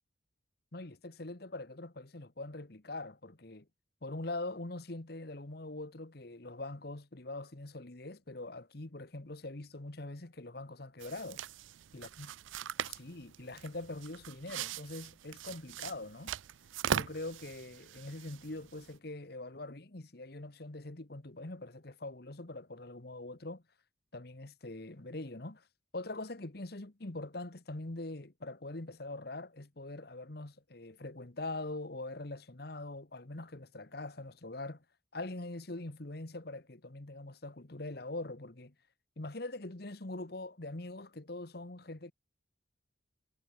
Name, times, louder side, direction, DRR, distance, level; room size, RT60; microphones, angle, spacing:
voice 1, 0.7-3.7 4.0-11.4 11.9-12.3 12.9-16.3 16.9-23.6 24.1-25.6 25.9-34.8 35.1-38.7 39.2-42.1, left 2 dB, 50° left, 1.3 m, -43 dB
sound 1, 11.0-19.0, right 8 dB, 80° right, 0.5 m, -41 dB
head